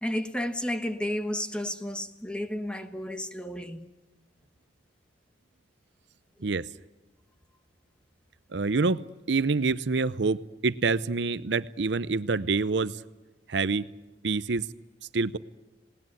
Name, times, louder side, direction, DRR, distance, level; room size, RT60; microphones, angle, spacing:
voice 1, 0.0-3.9, left 1 dB, 5° left, 1.3 m, -32 dB
voice 2, 8.5-13.0 13.5-13.9 14.2-14.7 15.1-15.4, right 4 dB, 70° right, 0.7 m, -26 dB
19.5 x 19.0 x 9.7 m
head